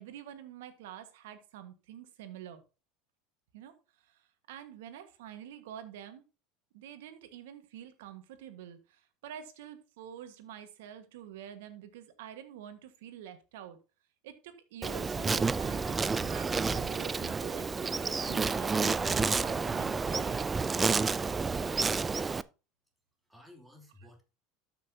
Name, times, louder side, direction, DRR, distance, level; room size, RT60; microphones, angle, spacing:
voice 1, 0.0-2.6 3.5-3.7 4.1-4.2 4.5-6.2 6.7-13.8 14.2-17.7 18.0-20.4, right 10 dB, 80° right, 1.5 m, -47 dB
Insect, 14.8-22.4, right 4 dB, 20° right, 0.4 m, -30 dB
voice 2, 23.3-24.2, left 1 dB, 5° right, 2.9 m, -56 dB
13.0 x 6.0 x 2.8 m
hypercardioid pair, 95°, 0 cm